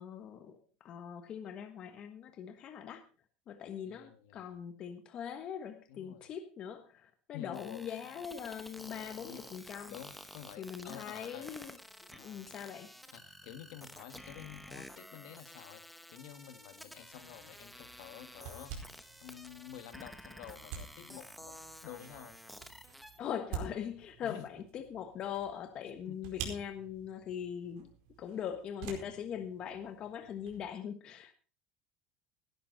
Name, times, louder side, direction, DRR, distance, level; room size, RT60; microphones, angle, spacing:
voice 1, 0.0-3.0 3.5-10.0 10.6-11.7 12.1-12.9 23.2-27.9 28.2-31.4, left 8 dB, 35° left, 8 dB, 1.4 m, -41 dB
voice 2, 3.8-4.6 5.9-6.3 7.3-7.8 9.2-9.4 9.8-11.5 12.1-12.6 13.1-21.6 21.8-22.4 24.2-24.5 26.1-26.3, left 11 dB, 70° left, 10 dB, 1.8 m, -50 dB
sound 1, 7.5-23.2, equal, ahead, 1.0 m, -51 dB
sound 2, 17.1-30.7, right 7 dB, 65° right, 4.7 m, -49 dB
17.0 x 11.5 x 4.1 m, 0.36 s
cardioid pair, 170°, 3 cm